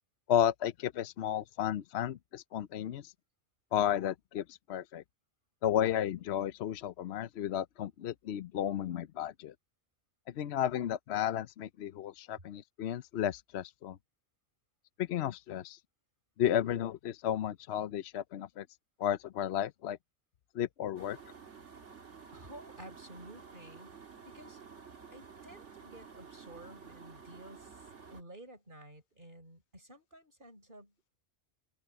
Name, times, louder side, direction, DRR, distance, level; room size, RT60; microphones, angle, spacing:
voice 1, 0.3-3.1 3.7-5.0 5.6-9.5 10.3-14.0 15.0-15.8 16.4-18.7 19.0-20.0 20.5-21.2, left 10 dB, 70° left, 0.9 m, -33 dB
sound 1, 21.0-28.2, right 6 dB, 85° right, 2.3 m, -52 dB
voice 2, 22.3-23.9 24.2-24.6 25.1-27.8 28.1-31.2, right 1 dB, 45° right, 6.9 m, -52 dB
open air
omnidirectional pair, 1.2 m